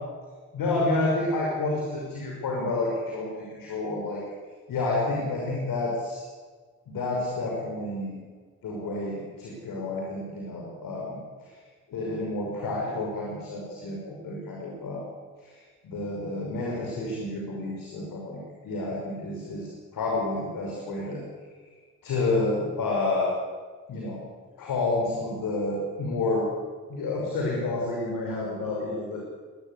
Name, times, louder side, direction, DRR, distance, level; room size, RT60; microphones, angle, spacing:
voice 1, 0.5-4.2 4.7-6.2 6.9-8.2 8.6-11.5 11.9-15.0 15.4-21.4 22.0-23.3 23.9-24.2 24.6-26.5 26.9-29.2, left 2 dB, 55° left, -2 dB, 5.9 m, -29 dB
22.5 x 20.5 x 8.4 m, 1.5 s
figure-of-eight pair, 40°, 40 cm